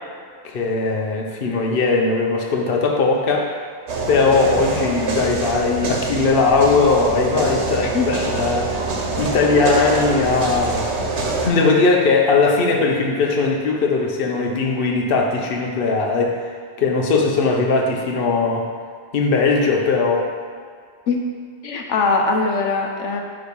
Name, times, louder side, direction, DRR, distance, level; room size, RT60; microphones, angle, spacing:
voice 1, 0.4-3.5 4.1-8.8 9.2-10.9 11.4-18.7 19.1-20.3, left 4 dB, 55° left, 0 dB, 1.0 m, -19 dB
sound 1, 3.9-11.5, right 2 dB, 70° right, 1.2 m, -25 dB
voice 2, 21.6-23.2, left 4 dB, 90° left, 2 dB, 1.1 m, -21 dB
8.9 x 3.2 x 5.4 m, 2.1 s
omnidirectional pair, 1.2 m